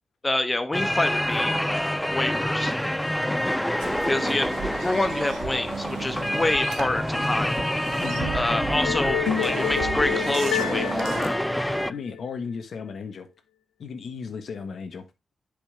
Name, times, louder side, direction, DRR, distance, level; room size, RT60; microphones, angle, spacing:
voice 1, 0.2-2.8 4.1-4.5 4.8-7.8 8.3-11.4, left 2 dB, 25° left, 1.1 m, -27 dB
sound 1, 0.7-11.9, equal, 5° left, 0.5 m, -27 dB
sound 2, 3.8-11.3, right 7 dB, 85° right, 1.1 m, -36 dB
voice 2, 8.0-8.4 11.9-13.3 13.8-15.0, left 5 dB, 70° left, 1.4 m, -35 dB
sound 3, 8.8-12.2, left 11 dB, 85° left, 0.6 m, -30 dB
10.5 x 5.3 x 3.5 m
supercardioid pair, 40°, 0 cm